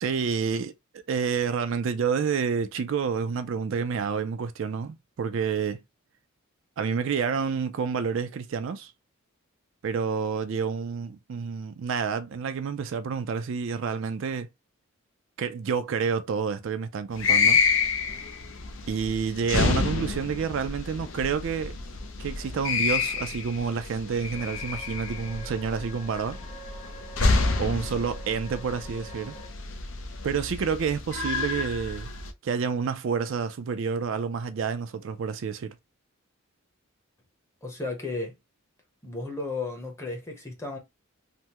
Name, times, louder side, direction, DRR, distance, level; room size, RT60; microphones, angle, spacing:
voice 1, 0.0-5.8 6.8-8.9 9.8-14.5 15.4-17.6 18.9-21.8 22.2-26.4 27.6-29.3 30.2-32.1 32.4-35.7, right 6 dB, 60° right, 0.4 m, -29 dB
sound 1, 17.2-32.3, left 4 dB, 60° left, 0.6 m, -28 dB
sound 2, 24.3-29.5, right 1 dB, 30° left, 1.1 m, -46 dB
voice 2, 37.6-38.4 39.0-40.8, left 3 dB, 15° left, 0.8 m, -34 dB
3.4 x 2.0 x 2.8 m
head